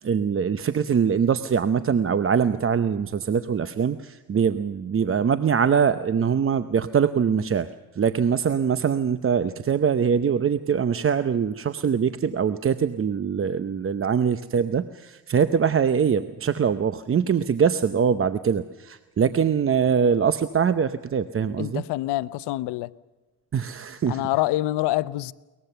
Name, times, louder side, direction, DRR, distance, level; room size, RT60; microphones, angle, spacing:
voice 1, 0.0-7.7 7.9-21.8 23.5-24.2, right 7 dB, 35° right, 0.8 m, -23 dB
voice 2, 21.6-22.9 24.1-25.3, left 16 dB, 90° left, 0.8 m, -26 dB
22.5 x 20.0 x 6.8 m
cardioid pair, 100°, 39 cm